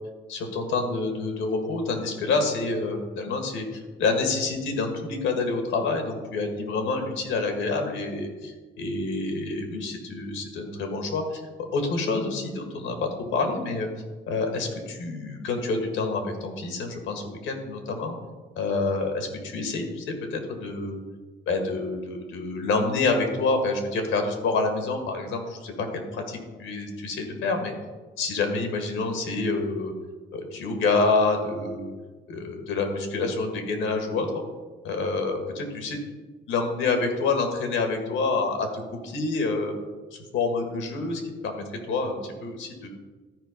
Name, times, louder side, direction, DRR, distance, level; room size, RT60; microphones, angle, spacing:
voice 1, 0.3-11.4 11.7-13.9 14.3-18.1 18.6-21.0 21.5-27.7 28.2-29.9 30.3-31.9 32.3-34.3 34.8-36.0 36.5-39.7 40.3-42.9, left 3 dB, 85° left, 4 dB, 1.7 m, -27 dB
12.5 x 4.6 x 5.2 m, 1.3 s
cardioid pair, 90°, 20 cm